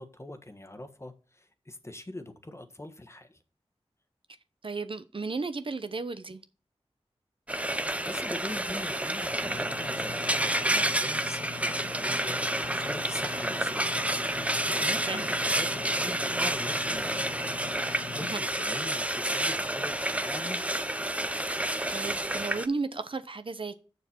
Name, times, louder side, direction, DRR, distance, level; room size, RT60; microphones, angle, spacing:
voice 1, 0.0-3.4 8.1-14.0 14.4-17.5 18.1-20.7, left 1 dB, 25° left, 1.3 m, -42 dB
voice 2, 4.6-6.4 15.0-15.3 18.2-18.4 21.6-23.7, right 4 dB, 55° right, 0.7 m, -34 dB
Frying (food), 7.5-22.7, right 1 dB, 10° right, 0.7 m, -29 dB
Engine / Mechanisms, 9.4-18.4, left 5 dB, 55° left, 0.6 m, -43 dB
6.9 x 6.8 x 4.4 m
wide cardioid pair, 70°, 11 cm